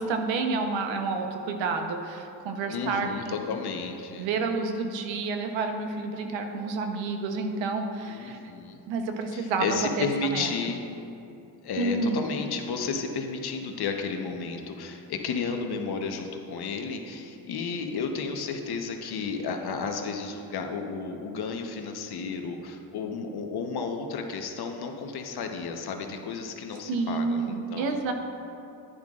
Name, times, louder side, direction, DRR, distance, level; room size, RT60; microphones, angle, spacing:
voice 1, 0.0-3.3 4.2-8.4 8.9-10.1 10.3-10.5 11.8-12.2 26.9-28.1, right 4 dB, 80° right, 5 dB, 1.0 m, -29 dB
voice 2, 2.6-4.3 8.1-8.8 9.3-10.8 11.6-28.0, left 5 dB, 60° left, 4 dB, 1.0 m, -32 dB
10.5 x 10.5 x 2.5 m, 2.7 s
supercardioid pair, 70°, 44 cm